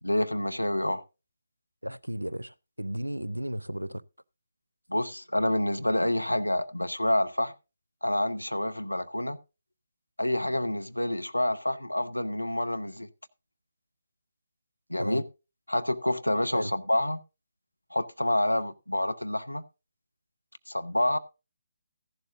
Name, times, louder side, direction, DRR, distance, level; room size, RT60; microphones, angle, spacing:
voice 1, 0.0-1.0 4.9-7.5 8.0-9.4 10.2-13.1 14.9-15.2 15.7-17.2 17.9-19.6 20.7-21.2, left 1 dB, 85° left, 0.8 m, -28 dB
voice 2, 1.8-4.0 15.0-15.2 16.5-16.7, equal, 90° right, 0.4 m, -34 dB
14.5 x 11.5 x 2.5 m
figure-of-eight pair, 145°, 0 cm